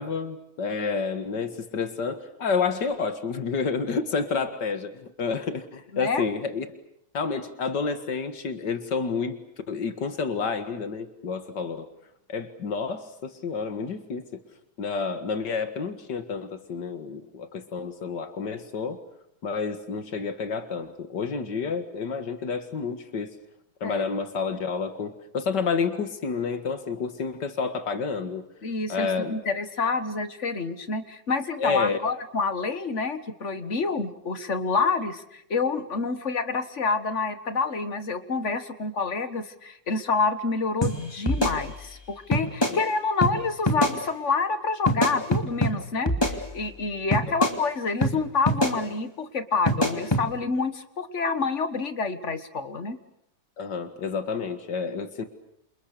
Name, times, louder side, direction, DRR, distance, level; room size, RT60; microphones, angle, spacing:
voice 1, 0.0-6.7 7.1-9.4 9.7-11.9 12.3-14.2 14.8-19.0 19.4-23.3 23.8-28.5 28.9-29.3 31.6-32.0 42.6-42.8 47.3-47.4 53.6-55.2, left 5 dB, 80° left, 9 dB, 2.4 m, -29 dB
voice 2, 28.6-42.0 42.3-53.0, left 4 dB, 45° left, 11 dB, 1.8 m, -28 dB
sound 1, 40.8-40.9 41.3-42.0 42.3-42.8 43.2-43.3 43.7-44.0 44.9-45.7 46.1-46.8 47.1-47.6 48.0-48.1 48.5-48.8 49.7-50.2, equal, 15° left, 2.6 m, -24 dB
28.5 x 28.0 x 6.8 m, 0.74 s
omnidirectional pair, 1.8 m